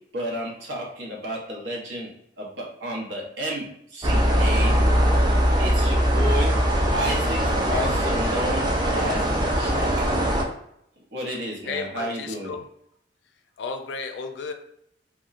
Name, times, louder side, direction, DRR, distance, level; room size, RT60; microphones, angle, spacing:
voice 1, 0.1-2.1 2.4-4.7 5.6-6.5 6.9-7.4 7.7-8.7 8.9-9.2 9.5-9.9 11.1-12.5, equal, 75° right, -2 dB, 0.8 m, -31 dB
sound 1, 4.0-10.4, equal, 25° right, 0.4 m, -21 dB
voice 2, 11.6-12.7 13.6-14.5, left 5 dB, 70° left, 6 dB, 0.4 m, -33 dB
2.8 x 2.2 x 2.4 m, 0.73 s
head